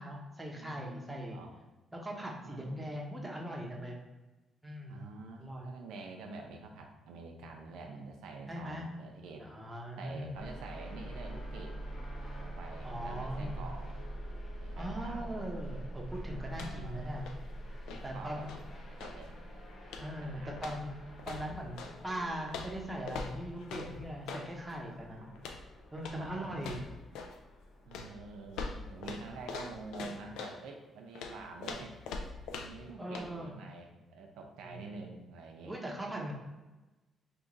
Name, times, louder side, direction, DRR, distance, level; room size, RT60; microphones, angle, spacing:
voice 1, 0.0-1.4 1.9-4.0 4.6-5.0 5.4-5.7 8.5-8.8 9.4-10.3 12.8-13.6 14.8-17.3 17.7-18.5 20.0-20.9 21.3-25.3 25.9-26.8 33.0-33.6 34.6-34.8 35.7-36.3, equal, 10° right, -1 dB, 0.7 m, -40 dB
voice 2, 0.5-1.5 2.4-2.9 4.9-9.4 10.0-11.8 12.4-13.8 14.6-15.5 16.4-17.2 17.9-18.5 19.0-19.4 20.2-20.6 25.1-25.4 26.1-26.5 27.9-35.7, right 3 dB, 90° right, 2 dB, 0.4 m, -47 dB
sound 1, 10.4-30.1, right 1 dB, 50° left, 0.7 m, -46 dB
sound 2, 16.5-16.9 17.2-19.3 19.9-20.2 20.6-22.0 22.5-24.5 25.4-25.7 26.0-26.3 26.6-27.4 27.9-30.6 31.2-32.9 33.1-33.3, left 4 dB, 90° left, 0.3 m, -43 dB
3.0 x 2.5 x 3.7 m, 1.1 s
cardioid pair, 90°, 0 cm